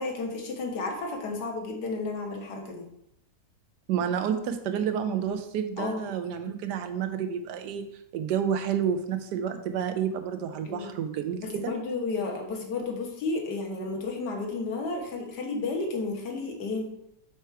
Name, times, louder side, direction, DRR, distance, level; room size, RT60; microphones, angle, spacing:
voice 1, 0.0-2.9 5.8-6.1 10.6-10.9 11.6-16.9, left 3 dB, 75° left, 1 dB, 1.7 m, -32 dB
voice 2, 3.9-7.9 8.1-11.7, right 8 dB, 85° right, 8 dB, 1.2 m, -29 dB
4.6 x 4.4 x 4.6 m, 0.78 s
omnidirectional pair, 1.8 m